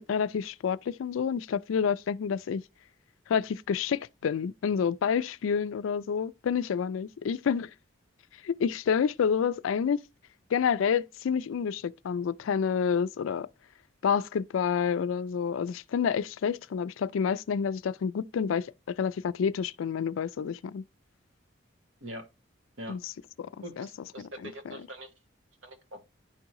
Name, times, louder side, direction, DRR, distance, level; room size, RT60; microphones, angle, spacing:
voice 1, 0.0-2.6 3.3-7.7 8.4-10.0 10.5-13.5 14.0-20.8 22.9-23.1 23.4-23.5 23.8-23.9 24.2-24.8, left 7 dB, 85° left, 0.3 m, -29 dB
voice 2, 23.6-25.1 25.6-26.0, equal, 75° right, 1.3 m, -43 dB
10.5 x 3.6 x 3.0 m
head